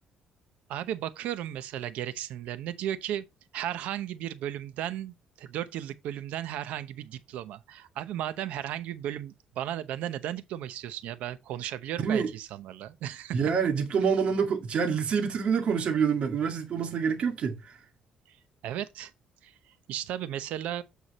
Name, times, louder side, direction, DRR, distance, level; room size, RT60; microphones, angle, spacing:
voice 1, 0.7-3.2 3.5-13.4 18.3-18.4 18.6-19.1 19.4-20.8, right 11 dB, 85° right, 0.8 m, -35 dB
voice 2, 13.3-17.6, right 6 dB, 55° right, 2.0 m, -26 dB
8.3 x 4.6 x 4.2 m
cardioid pair, 100°, 2 cm